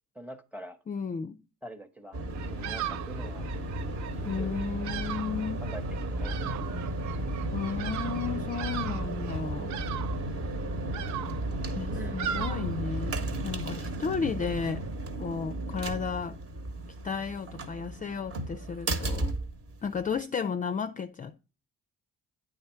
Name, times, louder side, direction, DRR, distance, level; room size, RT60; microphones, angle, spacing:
voice 1, 0.1-0.8 1.6-3.5 4.1-4.7 5.6-6.8 11.9-12.2, equal, 5° right, 0.8 m, -45 dB
voice 2, 0.9-1.4 4.3-5.6 7.5-9.7 11.7-14.9 15.2-16.4 17.0-19.3 19.8-21.4, left 6 dB, 25° left, 0.4 m, -33 dB
sound 1, 2.1-20.2, right 1 dB, 50° right, 1.1 m, -34 dB
Bird vocalization bird call bird song, 2.3-13.3, right 10 dB, 70° right, 0.5 m, -39 dB
8.6 x 3.7 x 4.4 m
cardioid pair, 90°, 30 cm